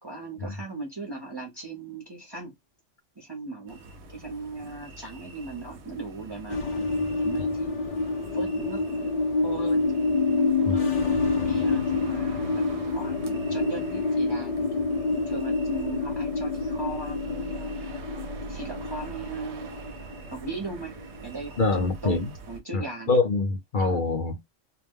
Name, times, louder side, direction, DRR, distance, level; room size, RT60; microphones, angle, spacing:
voice 1, 0.0-2.6 3.2-3.8 4.1-6.9 7.2-7.7 8.3-9.1 9.4-9.8 10.3-10.9 11.4-12.6 12.9-14.6 15.1-17.7 18.5-19.7 20.3-21.6 22.0-23.2 23.7-24.0, right 3 dB, 25° right, 0.6 m, -38 dB
sound 1, 3.7-22.6, right 3 dB, 70° right, 0.9 m, -43 dB
sound 2, 6.5-21.2, left 3 dB, 70° left, 0.3 m, -27 dB
voice 2, 21.6-22.3 22.7-24.4, left 3 dB, 50° left, 0.7 m, -25 dB
2.3 x 2.2 x 3.4 m
omnidirectional pair, 1.3 m